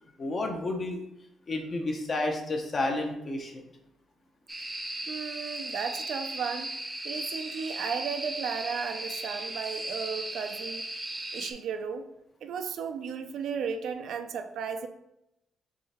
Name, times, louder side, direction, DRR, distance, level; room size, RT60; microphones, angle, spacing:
voice 1, 0.2-1.0 1.5-3.6, left 2 dB, 35° left, 3 dB, 0.8 m, -31 dB
sound 1, 4.5-11.5, right 1 dB, 10° right, 0.6 m, -36 dB
voice 2, 5.1-6.7 7.0-10.8 11.3-12.0 12.4-14.9, right 6 dB, 70° right, 7 dB, 0.4 m, -34 dB
3.7 x 3.2 x 4.2 m, 0.86 s
cardioid pair, 125°, 0 cm